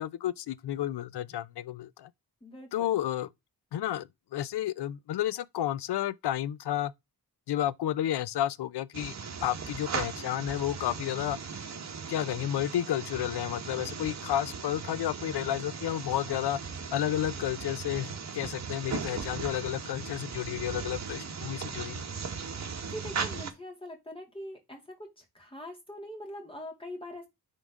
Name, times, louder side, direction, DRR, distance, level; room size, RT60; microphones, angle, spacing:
voice 1, 0.0-2.1 2.7-3.3 3.7-6.9 7.5-9.2 9.4-11.4 12.1-16.6 16.9-22.1, left 12 dB, 90° left, 0.5 m, -31 dB
voice 2, 2.4-2.9 22.5-27.3, equal, 15° left, 2.5 m, -43 dB
sound 1, 8.9-23.5, right 5 dB, 45° right, 1.2 m, -38 dB
9.9 x 3.8 x 3.6 m
wide cardioid pair, 140°, 39 cm